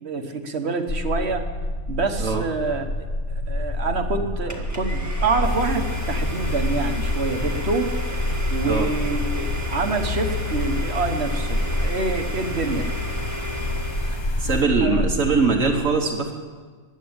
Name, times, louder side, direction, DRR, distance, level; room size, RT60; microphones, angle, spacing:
voice 1, 0.0-1.4 1.9-2.9 3.5-7.9 8.5-12.9 14.0-14.2 14.4-15.1, right 3 dB, 55° right, 6 dB, 1.5 m, -27 dB
sound 1, 0.9-15.7, left 1 dB, 65° left, 1.8 m, -28 dB
Domestic sounds home sounds, 4.5-14.5, right 2 dB, 15° right, 1.5 m, -35 dB
sound 2, 5.4-14.6, left 7 dB, 30° left, 0.5 m, -32 dB
voice 2, 14.4-16.3, right 4 dB, 80° right, -1 dB, 1.8 m, -21 dB
14.5 x 11.0 x 8.8 m, 1.5 s
omnidirectional pair, 1.3 m